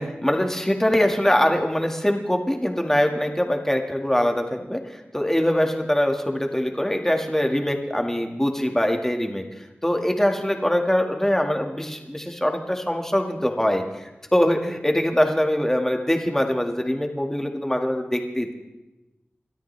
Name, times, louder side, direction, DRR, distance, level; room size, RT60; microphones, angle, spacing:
voice 1, 0.0-18.5, left 1 dB, 10° left, 3 dB, 2.0 m, -23 dB
29.0 x 13.0 x 3.4 m, 1.0 s
wide cardioid pair, 75°, 4 cm